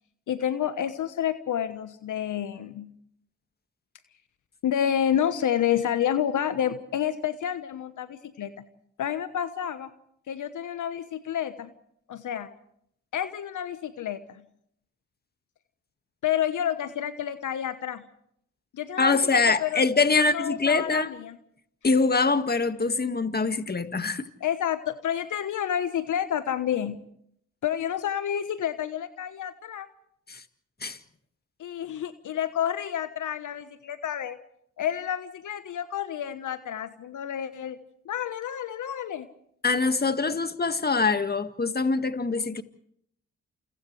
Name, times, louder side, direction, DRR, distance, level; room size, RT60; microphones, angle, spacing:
voice 1, 0.3-2.9 4.6-8.6 9.0-9.9 10.3-11.7 12.1-12.5 13.1-14.4 16.2-18.0 18.7-19.8 20.1-21.4 24.4-27.0 27.6-29.9 31.6-34.4 34.8-37.8 38.0-39.3, left 10 dB, 65° left, 1.2 m, -29 dB
voice 2, 19.0-21.1 21.8-24.2 30.3-30.4 30.8-31.0 39.6-42.6, left 4 dB, 30° left, 1.9 m, -24 dB
30.0 x 29.0 x 3.3 m
hypercardioid pair, 45°, 34 cm